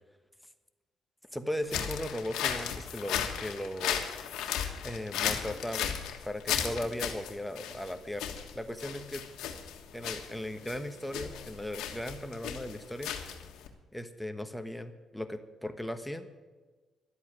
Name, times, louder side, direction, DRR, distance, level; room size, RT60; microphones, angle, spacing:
voice 1, 1.3-4.0 4.8-9.2 9.9-13.1 13.9-16.3, left 1 dB, 5° left, 8 dB, 1.2 m, -37 dB
sound 1, 1.6-13.7, left 9 dB, 90° left, 1.5 m, -35 dB
12.5 x 8.3 x 9.5 m, 1.3 s
cardioid pair, 90°, 0 cm